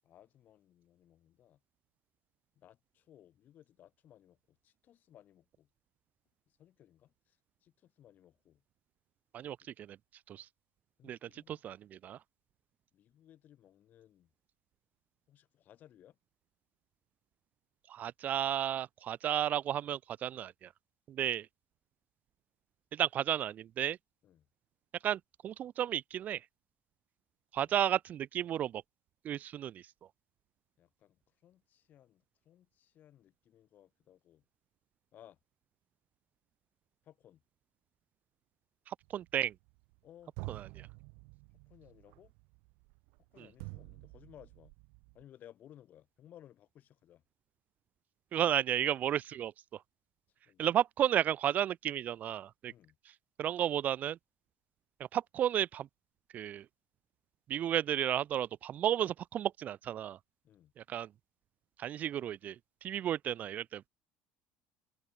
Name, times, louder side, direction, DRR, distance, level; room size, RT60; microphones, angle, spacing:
voice 1, 0.0-1.6 2.6-5.7 6.5-8.6 11.0-11.6 12.9-14.3 15.3-16.2 24.2-24.5 27.6-27.8 30.8-34.4 35.1-35.4 37.0-37.4 40.0-40.3 41.7-42.3 43.3-44.7 45.1-47.2 50.4-50.7 52.7-53.0 60.4-60.7, left 11 dB, 45° left, 6.9 m, -60 dB
voice 2, 9.3-10.0 10.3-10.5 11.1-11.2 11.5-12.2 17.9-20.7 21.1-21.5 22.9-24.0 25.0-26.4 27.5-28.8 29.2-29.8 38.9-39.5 40.5-40.7 43.4-43.5 48.3-49.5 50.6-52.7 53.4-54.2 55.1-55.9 56.3-56.6 57.5-60.2 60.9-61.1 61.8-62.6 62.8-63.8, right 10 dB, 45° right, 0.5 m, -33 dB
sound 1, 39.0-40.0 40.4-45.2, right 38 dB, 80° right, 4.2 m, -49 dB
cardioid pair, 125°, 4 cm